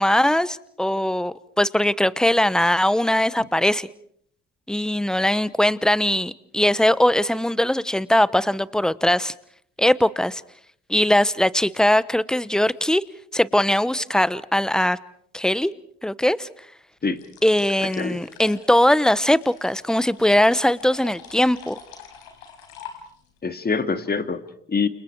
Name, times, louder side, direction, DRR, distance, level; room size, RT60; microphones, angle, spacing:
voice 1, 0.0-3.9 4.7-9.3 9.8-10.4 10.9-13.0 13.3-15.0 15.3-15.7 16.0-16.5 17.4-21.8, left 1 dB, ahead, 18 dB, 1.1 m, -20 dB
sound 1, 17.2-23.4, left 7 dB, 80° left, 4.7 m, -45 dB
voice 2, 23.4-24.9, left 4 dB, 30° left, 9 dB, 2.4 m, -25 dB
29.5 x 27.0 x 4.7 m, 0.65 s
hypercardioid pair, 55°, 30 cm